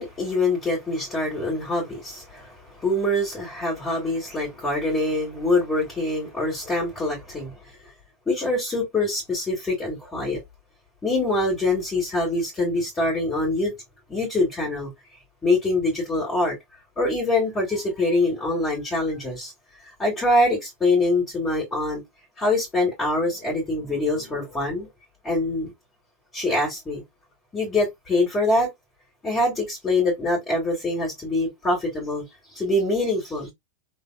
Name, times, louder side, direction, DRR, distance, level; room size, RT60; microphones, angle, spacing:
voice 1, 0.0-7.6 8.3-10.4 11.0-13.7 14.1-14.9 15.4-16.6 17.0-19.5 19.8-22.0 22.4-24.9 25.2-25.7 26.3-27.0 27.5-28.7 29.2-32.2 32.5-33.5, left 2 dB, 15° left, 2.4 m, -24 dB
3.5 x 3.4 x 2.3 m
figure-of-eight pair, 90°, 0 cm